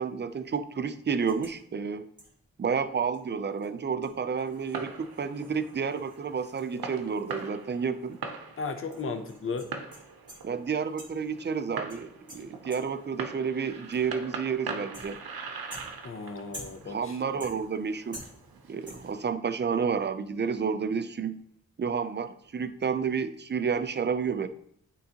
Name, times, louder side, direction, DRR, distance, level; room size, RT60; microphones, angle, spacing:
voice 1, 0.0-2.0 2.6-8.2 10.4-15.2 16.9-18.2 18.7-21.4 21.8-24.5, right 6 dB, 30° right, 11 dB, 0.4 m, -30 dB
sound 1, 1.3-1.6 2.2-2.5 3.1-3.2 3.6-3.7 4.0-7.8 8.0-8.1 8.9-10.6 11.0-11.4 11.9-13.1 13.9-14.3 14.9-15.4 15.7-17.0 17.4-17.9 18.1-18.6 18.9-19.2, equal, 10° right, 1.9 m, -49 dB
Fireworks, 4.5-19.3, right 5 dB, 85° right, 0.7 m, -42 dB
voice 2, 8.6-9.7 16.0-17.1, left 4 dB, 40° left, 7 dB, 0.6 m, -35 dB
9.1 x 3.8 x 2.9 m, 0.67 s
wide cardioid pair, 80°, 35 cm